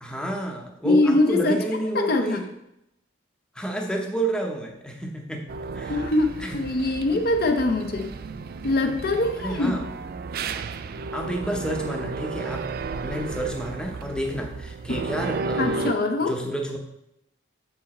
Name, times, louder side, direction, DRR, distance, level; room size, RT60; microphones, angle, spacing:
voice 1, 0.0-2.5 3.5-5.4 5.7-6.0 6.4-6.6 7.1-7.2 9.4-9.8 11.1-15.9 16.2-16.8, right 1 dB, 5° left, 1 dB, 0.8 m, -30 dB
voice 2, 0.8-1.6 1.9-2.4 5.9-8.1 8.6-9.7 14.9-15.0 15.6-16.3, left 2 dB, 50° left, 5 dB, 0.6 m, -23 dB
sound 1, 5.5-15.9, right 4 dB, 50° right, 0.3 m, -33 dB
7.0 x 4.8 x 4.2 m, 0.81 s
head